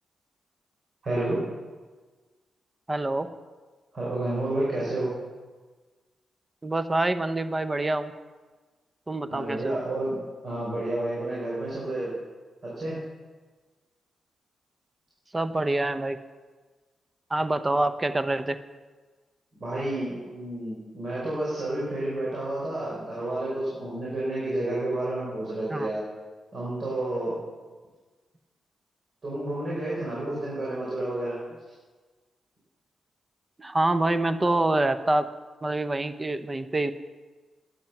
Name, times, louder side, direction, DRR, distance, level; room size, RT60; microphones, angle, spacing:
voice 1, 1.0-1.4 3.9-5.1 9.3-10.2 10.4-12.1 12.6-13.0 19.6-26.0 26.5-27.3 29.2-31.4, right 1 dB, 55° right, -7 dB, 5.2 m, -30 dB
voice 2, 2.9-3.3 6.6-8.1 9.1-9.8 15.3-16.2 17.3-18.6 25.7-25.9 33.6-35.3 35.6-36.9, right 2 dB, 25° right, 11 dB, 0.8 m, -26 dB
11.5 x 10.5 x 5.9 m, 1.4 s
supercardioid pair, 45°, 0 cm